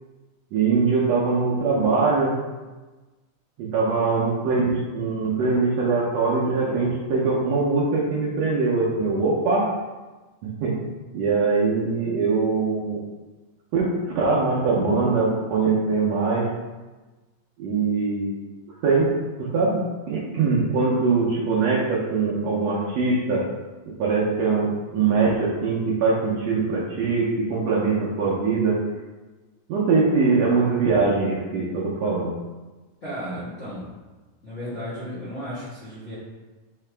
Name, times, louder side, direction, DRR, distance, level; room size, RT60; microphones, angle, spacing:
voice 1, 0.5-2.3 3.6-9.6 10.6-10.7 11.1-13.0 13.7-13.9 14.1-16.4 17.6-18.4 18.8-19.1 19.4-19.8 20.1-23.4 24.0-28.8 29.7-32.3, right 4 dB, 75° right, -5 dB, 1.6 m, -22 dB
voice 2, 33.0-33.9 34.4-36.1, equal, 85° left, -11 dB, 0.6 m, -34 dB
5.7 x 2.8 x 3.3 m, 1.2 s
omnidirectional pair, 3.6 m